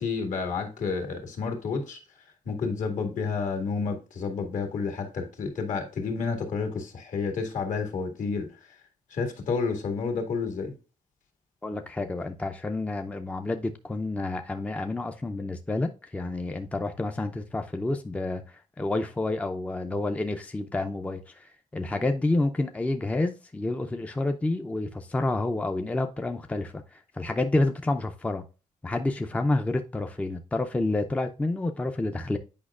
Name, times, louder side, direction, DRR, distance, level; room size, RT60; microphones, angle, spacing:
voice 1, 0.0-2.0 2.5-8.8 9.1-10.7, left 5 dB, 65° left, 1.9 m, -30 dB
voice 2, 11.6-28.4 28.8-32.4, left 2 dB, 10° left, 0.5 m, -29 dB
8.6 x 5.1 x 2.4 m
wide cardioid pair, 150°, 14 cm